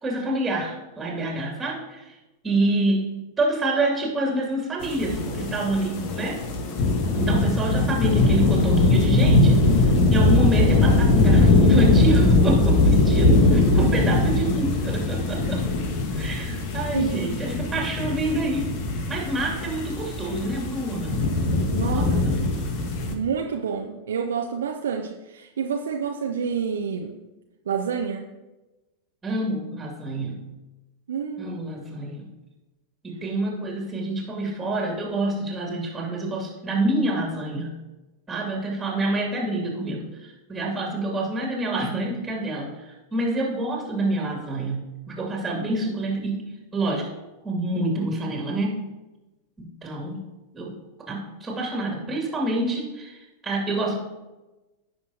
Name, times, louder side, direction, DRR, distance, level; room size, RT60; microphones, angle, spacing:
voice 1, 0.0-2.2 2.4-6.4 7.1-15.6 16.1-18.8 19.1-21.2 21.8-22.5 29.2-30.4 31.4-32.2 33.0-37.7 38.3-46.4 46.7-47.1 47.4-48.9 49.6-50.2 50.5-50.7 51.1-54.0, right 2 dB, 10° right, -1 dB, 2.2 m, -27 dB
sound 1, 4.8-23.1, left 2 dB, 40° left, 1.3 m, -20 dB
voice 2, 16.9-17.5 21.7-22.4 23.1-27.2 27.7-28.3 31.1-31.6, right 6 dB, 65° right, 2 dB, 0.7 m, -28 dB
16.5 x 6.0 x 2.8 m, 1.1 s
figure-of-eight pair, 90°, 0 cm